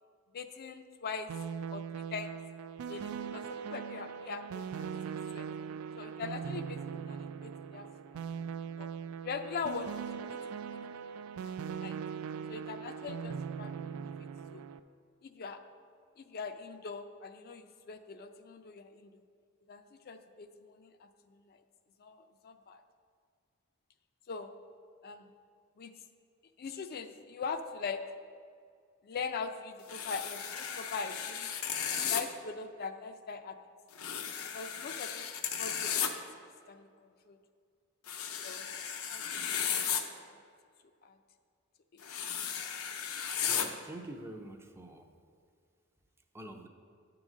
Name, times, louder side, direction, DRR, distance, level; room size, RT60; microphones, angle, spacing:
voice 1, 0.3-1.3 1.7-2.4 2.9-5.5 6.0-8.2 8.8-8.9 9.2-10.0 10.3-10.9 11.4-12.0 12.5-14.6 15.2-15.6 16.2-19.1 19.7-21.6 22.0-22.8 24.3-24.5 25.0-25.2 25.8-25.9 26.6-28.0 29.0-31.5 32.1-33.6 34.5-35.3 35.6-36.2 36.7-36.9 37.3-37.4 38.4-38.6 39.0-40.4 41.0-41.2, left 5 dB, 45° left, 8 dB, 0.4 m, -42 dB
sound 1, 1.3-14.8, right 7 dB, 75° right, 0.3 m, -40 dB
sound 2, 29.9-32.2 34.0-36.1 38.1-40.0 42.0-43.7, left 8 dB, 80° left, 0.6 m, -35 dB
voice 2, 43.4-45.1 46.3-46.7, right 1 dB, 10° right, 5 dB, 0.4 m, -46 dB
9.4 x 3.9 x 6.1 m, 2.2 s
head